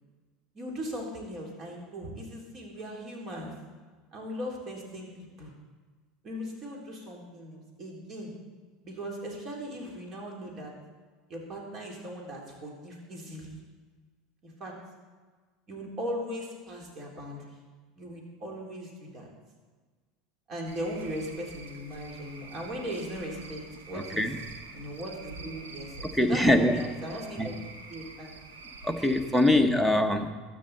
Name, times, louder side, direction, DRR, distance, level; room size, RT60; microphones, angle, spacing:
voice 1, 0.5-3.5 4.1-5.5 6.2-8.3 8.8-10.7 11.3-13.6 14.4-14.7 15.7-17.4 18.0-19.3 20.5-24.3 24.7-27.6 27.9-28.4, equal, 40° right, -1 dB, 3.7 m, -38 dB
Cricket / Frog, 20.7-29.6, right 3 dB, 70° right, 1.6 m, -46 dB
voice 2, 23.9-24.4 26.1-26.8 27.4-27.5 28.8-30.3, left 1 dB, 5° right, 9 dB, 1.2 m, -23 dB
21.0 x 9.4 x 4.3 m, 1.4 s
figure-of-eight pair, 75°, 0 cm